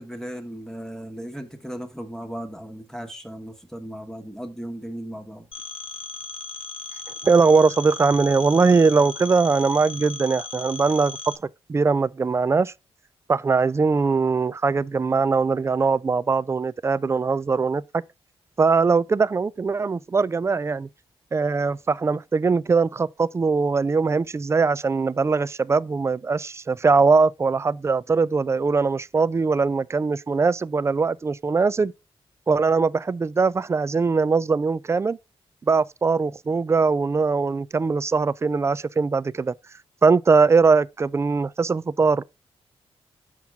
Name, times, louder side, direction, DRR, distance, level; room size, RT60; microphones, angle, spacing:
voice 1, 0.0-5.5, equal, 5° left, 1.2 m, -36 dB
Telephone, 5.5-11.4, left 4 dB, 60° left, 0.6 m, -37 dB
voice 2, 7.2-11.3 11.7-12.7 13.3-17.8 18.6-20.9 21.3-31.9 32.5-35.2 35.7-39.5 40.0-42.2, right 4 dB, 25° right, 0.3 m, -21 dB
6.0 x 5.8 x 3.5 m
cardioid pair, 95°, 10 cm